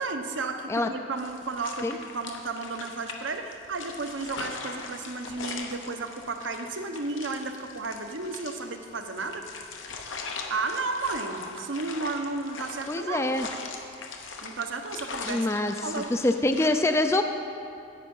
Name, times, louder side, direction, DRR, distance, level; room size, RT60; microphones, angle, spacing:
voice 1, 0.0-9.4 10.5-13.3 14.4-15.5 15.8-16.1, right 3 dB, 80° right, 5 dB, 0.9 m, -33 dB
sound 1, 1.2-16.7, left 4 dB, 85° left, 1.0 m, -40 dB
voice 2, 12.9-13.5 15.3-17.2, left 2 dB, 15° left, 6 dB, 0.3 m, -25 dB
10.0 x 8.7 x 5.4 m, 2.5 s
head